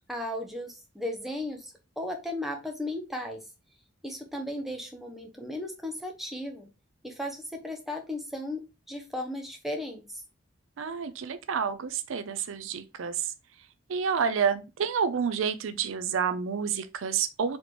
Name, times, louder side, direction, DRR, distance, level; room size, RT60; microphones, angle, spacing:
voice 1, 0.1-3.4 4.0-6.7 7.0-8.6 8.9-10.2, left 1 dB, ahead, 0.6 m, -35 dB
voice 2, 10.8-13.3 13.9-17.6, right 6 dB, 70° right, 0.4 m, -29 dB
4.2 x 2.9 x 3.2 m
head